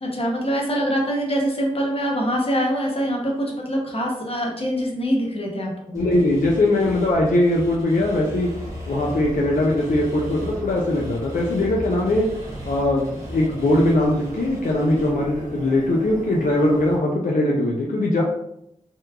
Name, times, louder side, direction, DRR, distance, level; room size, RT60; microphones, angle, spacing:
voice 1, 0.0-6.0, equal, 45° left, -1 dB, 0.7 m, -24 dB
voice 2, 5.9-8.5 8.9-12.3 12.7-18.2, left 1 dB, 80° left, -2 dB, 0.4 m, -20 dB
sound 1, 5.9-15.1, equal, 25° right, 1.1 m, -39 dB
sound 2, 8.3-17.0, equal, 85° right, 0.6 m, -37 dB
2.9 x 2.2 x 2.3 m, 0.78 s
wide cardioid pair, 55°, 13 cm